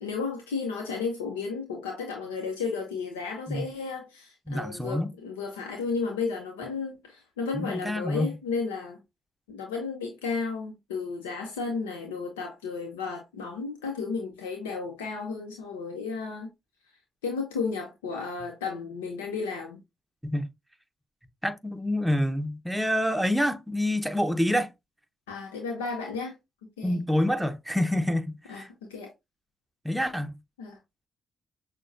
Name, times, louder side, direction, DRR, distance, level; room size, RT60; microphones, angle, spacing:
voice 1, 0.0-9.0 9.5-16.5 17.2-19.8 25.3-26.3 26.8-27.0 28.5-28.6 28.9-29.1 30.6-30.8, left 4 dB, 90° left, 0.6 m, -33 dB
voice 2, 4.5-5.1 7.5-8.3 20.2-20.5 21.4-24.7 26.8-28.7 29.8-30.4, left 1 dB, 5° right, 0.8 m, -27 dB
6.2 x 2.2 x 2.6 m
hypercardioid pair, 40°, 0 cm